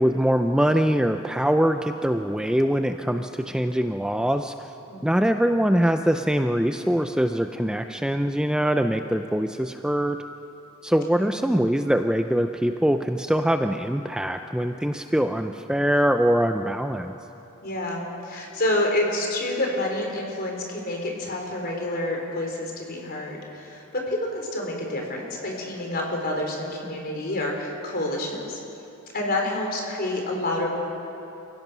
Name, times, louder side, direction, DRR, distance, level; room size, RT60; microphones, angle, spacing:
voice 1, 0.0-4.5 5.0-10.2 10.8-17.1, equal, 5° right, 7 dB, 0.5 m, -23 dB
voice 2, 4.9-5.2 11.1-11.3 17.6-28.6 29.1-30.7, left 1 dB, 45° left, 0 dB, 4.0 m, -28 dB
29.0 x 16.0 x 6.1 m, 2.9 s
head